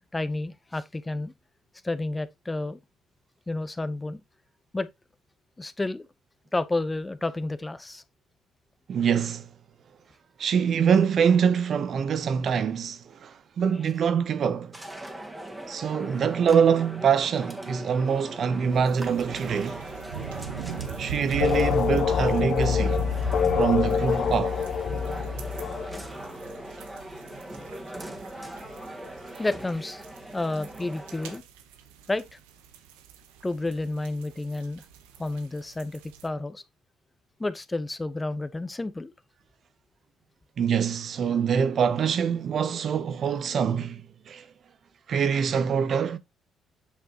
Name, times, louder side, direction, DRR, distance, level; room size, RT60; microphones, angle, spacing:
voice 1, 0.1-1.3 1.8-2.8 3.5-4.2 4.7-4.9 5.6-6.1 6.5-8.0 25.9-26.1 29.4-30.0 30.3-31.4 32.1-32.4 33.4-34.8 35.2-36.6 37.4-39.1, left 2 dB, 20° left, 0.9 m, -30 dB
voice 2, 8.9-9.5 10.4-14.7 15.7-19.9 21.0-23.0 23.6-24.6 40.6-44.0 44.3-44.4 45.1-46.2, right 7 dB, 55° right, 0.9 m, -24 dB
sound 1, 14.7-31.4, right 1 dB, 15° right, 1.9 m, -40 dB
sound 2, 18.7-36.3, right 8 dB, 90° right, 1.0 m, -40 dB
sound 3, 21.4-26.1, left 7 dB, 60° left, 0.9 m, -25 dB
8.2 x 5.6 x 2.9 m
supercardioid pair, 60°, 0 cm